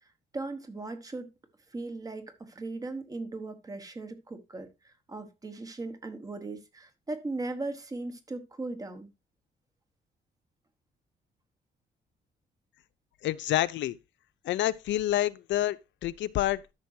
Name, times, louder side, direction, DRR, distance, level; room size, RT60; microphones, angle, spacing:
voice 1, 0.0-1.3 1.7-9.1, right 2 dB, 20° right, 1.2 m, -38 dB
voice 2, 13.2-14.0 14.4-16.7, left 13 dB, 85° left, 0.6 m, -28 dB
13.0 x 6.1 x 2.7 m
cardioid pair, 170°, 19 cm